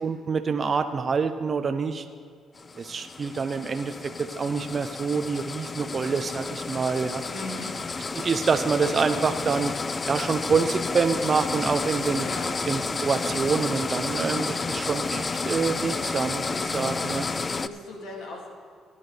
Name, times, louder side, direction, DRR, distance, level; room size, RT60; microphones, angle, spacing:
voice 1, 0.0-2.1 2.8-7.2 8.2-9.7 10.1-12.3 12.7-17.3, right 5 dB, 40° right, 7 dB, 0.6 m, -26 dB
sound 1, 2.6-17.7, left 4 dB, 30° left, 0.4 m, -31 dB
voice 2, 7.3-7.7 12.2-12.5 16.5-16.7 17.5-18.5, left 2 dB, 90° left, -1 dB, 2.4 m, -38 dB
sound 2, 10.1-15.9, equal, 10° left, 2.4 m, -49 dB
17.5 x 10.0 x 3.3 m, 2.3 s
cardioid pair, 90°, 0 cm